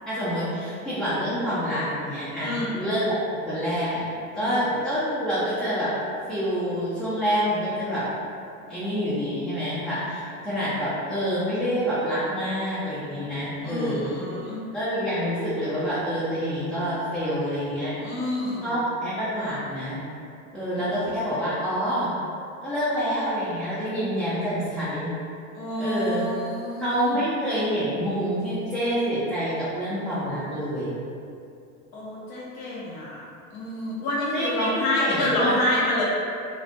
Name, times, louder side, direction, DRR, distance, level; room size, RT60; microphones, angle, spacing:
voice 1, 0.1-3.2 3.4-4.0 4.3-5.9 6.3-8.0 8.7-14.2 14.7-18.0 18.6-20.0 20.5-22.1 22.6-25.1 25.8-26.3 26.8-31.0 34.3-35.7, equal, ahead, -13 dB, 0.4 m, -27 dB
voice 2, 2.4-2.8 4.4-4.7 13.6-14.6 18.0-18.8 25.5-27.2 31.9-33.2 33.5-36.0, left 1 dB, 75° left, -6 dB, 0.8 m, -28 dB
2.4 x 2.2 x 2.5 m, 2.5 s
hypercardioid pair, 85°, 41 cm